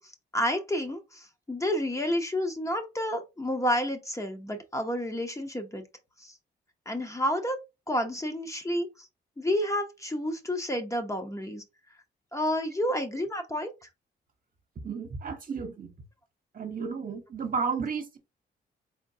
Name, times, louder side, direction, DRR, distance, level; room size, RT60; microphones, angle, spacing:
voice 1, 0.0-5.8 6.2-6.4 6.9-7.6 7.9-9.1 9.4-11.6 12.3-13.7, equal, 15° left, 0.9 m, -30 dB
voice 2, 14.8-15.9 16.5-18.2, right 5 dB, 45° right, 1.1 m, -32 dB
4.3 x 3.6 x 2.7 m
cardioid pair, 85°, 19 cm